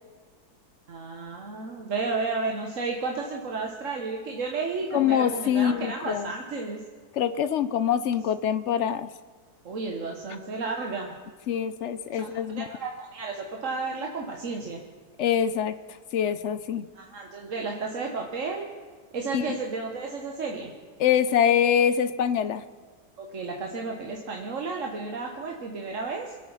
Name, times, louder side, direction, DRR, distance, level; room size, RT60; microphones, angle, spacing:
voice 1, 0.9-6.8 9.6-11.1 12.1-14.8 16.9-18.6 19.1-20.7 23.2-26.4, right 4 dB, 50° right, 1 dB, 1.5 m, -32 dB
voice 2, 4.9-6.3 7.1-9.1 11.5-12.8 15.2-15.7 16.1-16.9 19.3-19.6 21.0-22.6, left 9 dB, 65° left, 13 dB, 0.7 m, -24 dB
25.5 x 8.5 x 5.6 m, 1.5 s
omnidirectional pair, 1.7 m